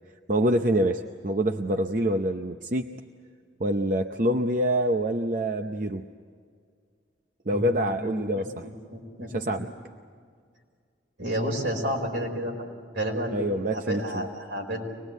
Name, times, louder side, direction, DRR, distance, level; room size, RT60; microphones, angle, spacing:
voice 1, 0.3-2.9 3.6-6.0 7.5-8.7 9.3-9.7 13.3-14.3, right 1 dB, 45° right, 5 dB, 0.7 m, -26 dB
voice 2, 7.5-9.6 11.2-13.4 13.7-14.9, equal, 80° right, 0 dB, 5.0 m, -31 dB
25.0 x 20.5 x 8.1 m, 2.1 s
head